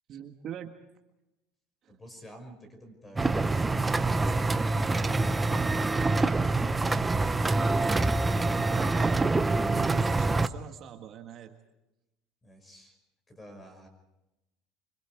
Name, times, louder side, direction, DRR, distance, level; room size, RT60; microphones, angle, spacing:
voice 1, 0.1-0.7 1.8-1.9 8.7-9.3 9.6-11.5, right 9 dB, 40° right, 4 dB, 1.7 m, -40 dB
voice 2, 1.9-6.1 6.5-7.5 12.4-13.0 13.3-13.9, equal, 15° left, 6 dB, 5.8 m, -49 dB
sound 1, 3.2-10.5, right 3 dB, 10° right, 0.7 m, -26 dB
26.0 x 25.5 x 4.7 m, 0.94 s
cardioid pair, 145°, 0 cm